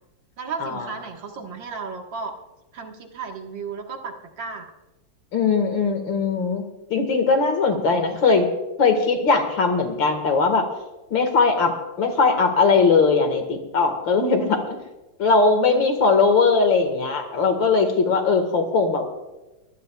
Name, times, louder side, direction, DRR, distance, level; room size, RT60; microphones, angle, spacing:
voice 1, 0.4-2.3 2.7-4.7 7.7-8.2 15.6-15.9, right 5 dB, 60° right, 2 dB, 2.2 m, -34 dB
voice 2, 5.3-8.5 8.8-10.7 11.1-11.7 12.0-14.6 15.2-19.1, left 4 dB, 60° left, 6 dB, 2.5 m, -20 dB
24.0 x 16.0 x 2.3 m, 1.0 s
omnidirectional pair, 2.4 m